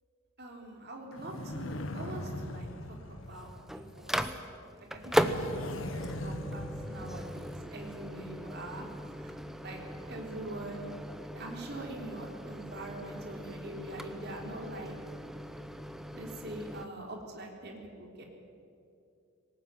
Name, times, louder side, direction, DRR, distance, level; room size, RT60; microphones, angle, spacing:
voice 1, 0.4-4.3 4.8-8.9 9.2-9.3 9.6-9.8 10.1-10.9 11.3-14.9 16.1-18.2, right 2 dB, 50° right, 0 dB, 3.5 m, -44 dB
sound 1, 1.1-4.2 5.1-7.8, left 1 dB, 65° left, 1.5 m, -40 dB
Microwave oven, 3.2-16.9, equal, ahead, 0.8 m, -38 dB
19.5 x 18.5 x 9.2 m, 2.5 s
head